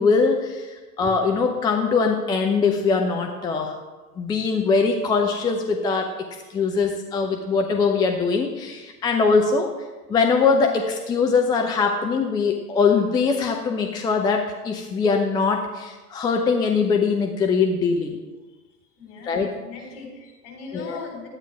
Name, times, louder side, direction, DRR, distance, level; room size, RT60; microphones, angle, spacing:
voice 1, 0.0-3.8 4.2-6.1 6.5-9.7 10.1-18.2 19.3-19.5 20.7-21.0, left 4 dB, 10° left, 3 dB, 0.5 m, -22 dB
voice 2, 19.0-21.3, left 3 dB, 50° left, 0 dB, 4.2 m, -39 dB
11.5 x 8.9 x 4.8 m, 1.2 s
figure-of-eight pair, 100°, 48 cm